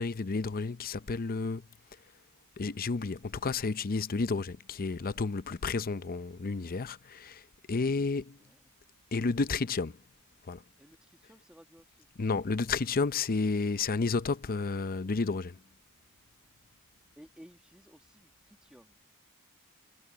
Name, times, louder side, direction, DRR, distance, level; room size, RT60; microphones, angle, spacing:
voice 1, 0.0-1.7 2.6-8.4 9.1-10.0 10.4-10.6 12.2-15.6, left 4 dB, 40° left, 0.6 m, -31 dB
voice 2, 10.8-12.1 17.1-19.0, equal, 5° right, 1.6 m, -57 dB
head